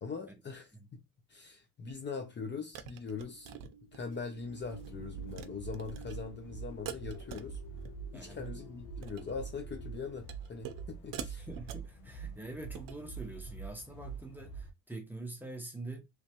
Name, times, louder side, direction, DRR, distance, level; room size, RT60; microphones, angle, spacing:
voice 1, 0.0-1.0 1.3-3.6 3.9-7.6 8.1-11.5, left 5 dB, 30° left, 0.7 m, -42 dB
sound 1, 1.9-2.0 2.7-4.2 4.6-4.9 5.2-5.5 5.7-6.1 6.8-8.5 8.9-9.3 10.3-10.8 11.1-11.9 12.6-13.0, right 8 dB, 60° right, 0.7 m, -45 dB
sound 2, 3.2-10.3, equal, 60° left, 2.0 m, -54 dB
sound 3, 4.4-14.7, right 5 dB, 75° left, 1.2 m, -45 dB
voice 2, 8.1-8.4 11.4-16.0, right 2 dB, 5° right, 0.9 m, -45 dB
3.2 x 3.1 x 2.9 m
cardioid pair, 145°, 37 cm